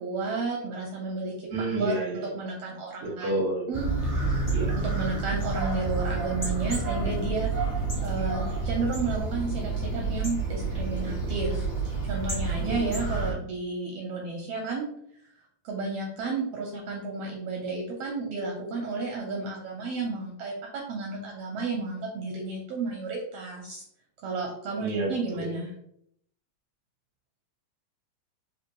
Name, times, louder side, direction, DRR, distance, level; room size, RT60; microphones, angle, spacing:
voice 1, 0.0-1.5 1.8-3.3 3.7-7.5 8.0-11.6 12.0-14.9 15.6-23.8 24.2-25.7, right 3 dB, 75° right, -1 dB, 1.5 m, -32 dB
voice 2, 1.5-2.2 3.0-3.7 4.5-4.7 8.2-8.3 12.6-13.0 24.8-25.5, right 2 dB, 50° right, -2 dB, 1.0 m, -30 dB
sound 1, 3.7-13.3, right 3 dB, 15° left, 0.7 m, -29 dB
4.3 x 3.2 x 2.9 m, 0.70 s
omnidirectional pair, 3.3 m